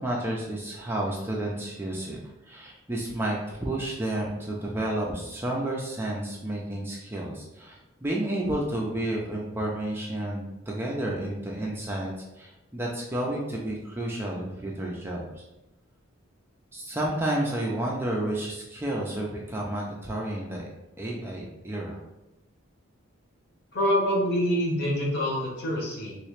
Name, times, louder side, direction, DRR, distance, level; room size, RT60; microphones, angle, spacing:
voice 1, 0.0-2.2 2.4-15.4 16.7-20.7 21.0-22.0, right 1 dB, 10° right, -2 dB, 0.4 m, -31 dB
voice 2, 23.7-26.2, equal, 50° left, -3 dB, 1.0 m, -26 dB
3.1 x 2.9 x 3.1 m, 0.95 s
head